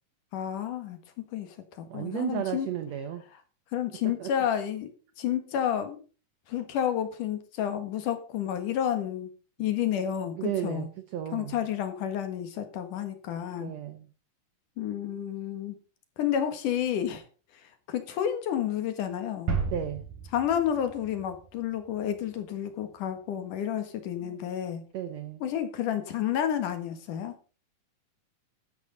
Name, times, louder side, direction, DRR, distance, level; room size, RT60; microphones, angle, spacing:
voice 1, 0.3-1.0 1.3-2.7 3.7-4.9 5.2-6.0 6.5-9.3 9.6-10.9 11.3-13.7 14.8-15.8 16.2-17.2 17.9-19.6 20.3-24.8 25.4-27.3, left 9 dB, 70° left, 3.1 m, -30 dB
voice 2, 1.9-3.2 4.2-4.3 10.4-11.6 13.6-14.1 19.7-20.1 24.2-24.4 24.9-25.4, right 10 dB, 70° right, 1.8 m, -34 dB
sound 1, 19.5-22.2, right 5 dB, 90° right, 4.8 m, -34 dB
13.0 x 11.0 x 4.0 m
omnidirectional pair, 3.9 m